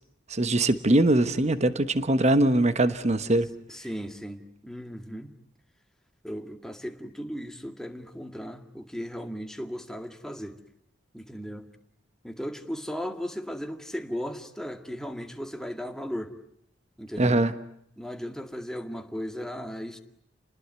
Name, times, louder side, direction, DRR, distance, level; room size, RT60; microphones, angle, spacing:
voice 1, 0.3-3.5 17.2-17.5, right 1 dB, 35° right, 1.2 m, -22 dB
voice 2, 3.7-5.3 6.2-10.6 11.1-11.6 12.2-16.3 17.0-17.4 18.0-20.0, equal, 5° left, 2.0 m, -36 dB
30.0 x 20.5 x 9.6 m
head